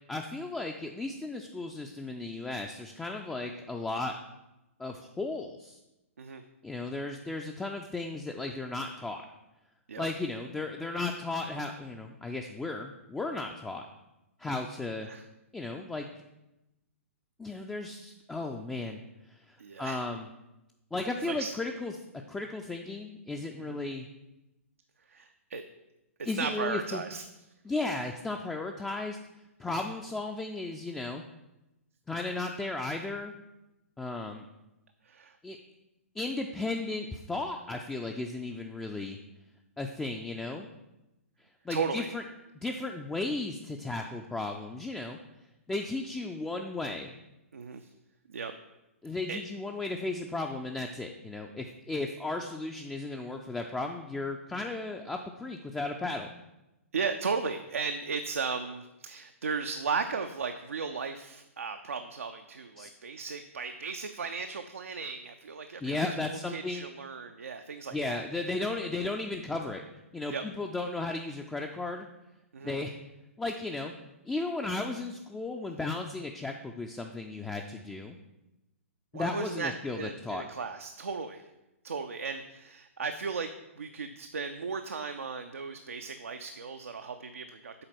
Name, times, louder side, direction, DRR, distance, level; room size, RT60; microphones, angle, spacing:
voice 1, 0.1-4.2 4.8-5.8 6.6-9.2 10.0-13.8 14.4-15.1 15.5-16.1 17.4-19.0 19.3-20.3 20.9-21.9 22.3-24.1 26.3-27.0 27.6-29.2 29.6-31.2 32.1-33.3 34.0-34.4 35.4-35.6 36.2-39.2 39.8-40.7 41.7-42.2 42.5-45.2 45.7-47.1 49.0-56.3 62.8-62.9 65.8-66.9 67.9-69.8 70.1-72.1 72.6-72.9 73.4-73.9 74.3-78.2 79.1-80.4, left 2 dB, 5° left, 2 dB, 0.4 m, -35 dB
voice 2, 19.6-20.1 21.3-21.5 23.6-23.8 25.1-25.6 26.2-27.2 35.0-35.4 41.7-42.1 47.5-47.9 48.3-48.5 49.3-49.4 56.9-68.2 70.3-70.4 72.5-72.8 79.1-81.5 81.8-83.5 83.8-87.7, right 5 dB, 70° right, 6 dB, 0.5 m, -36 dB
7.7 x 4.0 x 5.9 m, 0.95 s
figure-of-eight pair, 115°, 8 cm